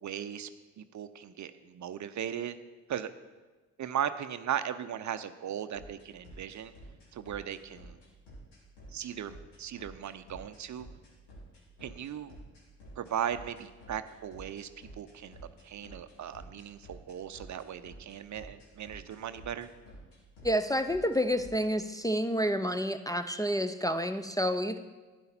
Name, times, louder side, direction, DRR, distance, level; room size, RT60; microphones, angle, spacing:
voice 1, 0.0-0.5 0.8-2.6 2.9-3.1 3.8-6.7 7.1-8.0 8.9-10.9 11.8-12.4 13.0-14.7 15.0-15.4 15.6-19.7, right 9 dB, 45° right, 11 dB, 0.6 m, -37 dB
sound 1, 5.7-21.7, equal, 70° left, 2.8 m, -50 dB
voice 2, 20.4-24.8, equal, 10° left, 10 dB, 0.6 m, -29 dB
12.0 x 10.0 x 4.3 m, 1.3 s
hypercardioid pair, 50°, 42 cm